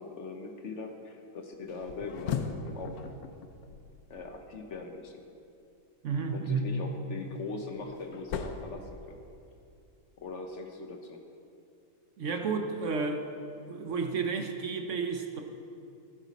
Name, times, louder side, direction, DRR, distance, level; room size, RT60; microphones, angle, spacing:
voice 1, 0.0-3.0 4.1-5.2 6.3-9.2 10.2-11.2, left 3 dB, 55° left, 4 dB, 1.1 m, -41 dB
sound 1, 1.7-4.8 7.0-9.6, left 6 dB, 75° left, 1.2 m, -39 dB
voice 2, 6.0-6.7 12.2-13.3 13.7-15.4, right 4 dB, 60° right, 5 dB, 1.0 m, -31 dB
15.5 x 9.2 x 4.1 m, 2.6 s
omnidirectional pair, 1.6 m